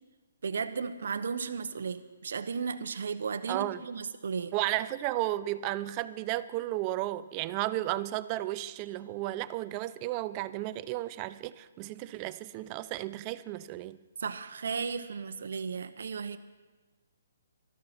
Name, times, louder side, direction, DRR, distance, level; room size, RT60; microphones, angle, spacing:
voice 1, 0.4-4.5 14.2-16.4, right 5 dB, 70° right, 11 dB, 0.8 m, -35 dB
voice 2, 3.5-3.8 4.5-14.0, right 15 dB, 30° right, 16 dB, 0.4 m, -33 dB
13.0 x 13.0 x 5.7 m, 1.3 s
hypercardioid pair, 145°, 0 cm